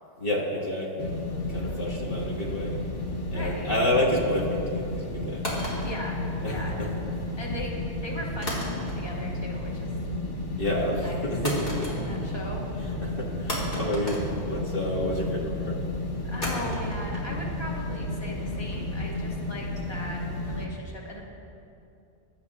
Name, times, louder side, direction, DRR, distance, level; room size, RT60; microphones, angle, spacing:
voice 1, 0.2-1.1 1.5-2.8 3.3-5.4 6.4-6.9 10.6-12.1 13.0-14.2 14.5-15.8, left 1 dB, 50° left, -4 dB, 1.7 m, -29 dB
sound 1, 1.0-20.7, left 1 dB, 90° left, 1.6 m, -32 dB
voice 2, 1.5-1.9 3.3-3.7 5.8-6.2 6.5-6.8 7.4-9.9 10.9-11.3 12.0-13.1 16.2-21.2, left 1 dB, 20° left, -3 dB, 1.7 m, -39 dB
sound 2, 5.4-6.8 8.4-9.3 9.6-10.0 11.4-12.4 12.7-12.8 13.5-15.0 16.4-19.4, equal, 70° left, 3.9 m, -36 dB
24.0 x 12.0 x 2.4 m, 2.6 s
omnidirectional pair, 1.2 m